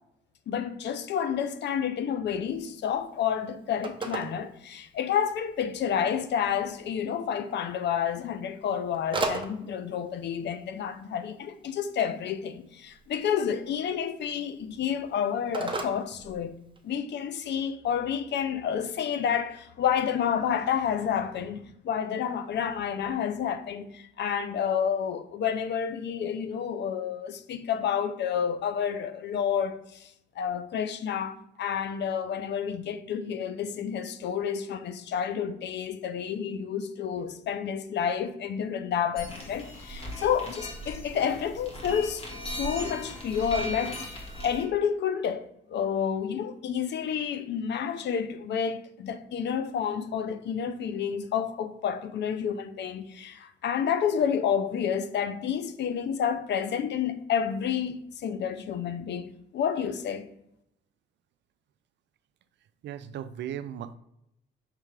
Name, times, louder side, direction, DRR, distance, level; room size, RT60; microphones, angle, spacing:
voice 1, 0.5-16.5 16.8-44.2 44.4-60.3, left 8 dB, 60° left, 0.5 m, -30 dB
Telephone, 2.5-17.0, right 3 dB, 25° right, 0.7 m, -40 dB
sound 1, 39.2-44.6, equal, 30° left, 1.6 m, -38 dB
voice 2, 62.8-64.0, right 10 dB, 65° right, 0.4 m, -36 dB
4.9 x 3.3 x 3.3 m
cardioid pair, 90°, 20 cm